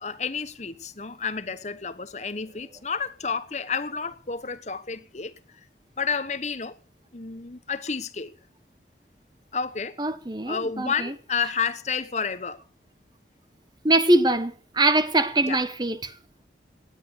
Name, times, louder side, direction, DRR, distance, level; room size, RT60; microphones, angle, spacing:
voice 1, 0.0-5.3 6.0-6.8 7.1-8.3 9.5-10.0 10.5-12.6 15.5-15.6, left 5 dB, 40° left, 1.0 m, -30 dB
voice 2, 10.0-11.1 13.8-16.1, right 2 dB, 25° right, 1.1 m, -23 dB
18.5 x 10.5 x 6.6 m
head